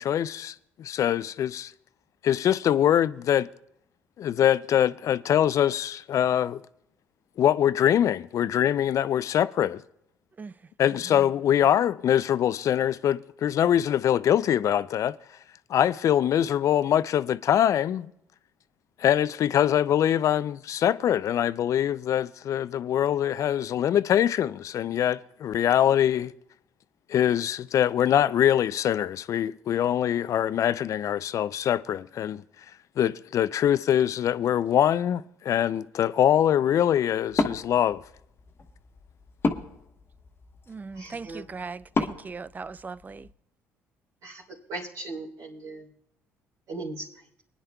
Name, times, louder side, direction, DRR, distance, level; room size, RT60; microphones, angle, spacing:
voice 1, 0.0-1.7 2.2-3.5 4.2-6.6 7.4-9.8 10.8-15.2 15.7-18.1 19.0-26.3 27.1-32.4 33.0-38.0, left 10 dB, 55° left, 0.4 m, -23 dB
voice 2, 10.9-11.3 40.7-43.3, right 4 dB, 25° right, 0.4 m, -39 dB
Wood, 37.3-43.3, left 3 dB, 35° left, 1.2 m, -33 dB
voice 3, 40.9-41.4 44.2-44.4 44.7-45.8 46.7-47.0, right 2 dB, 70° right, 3.3 m, -37 dB
23.5 x 10.0 x 2.3 m
supercardioid pair, 65°, 7 cm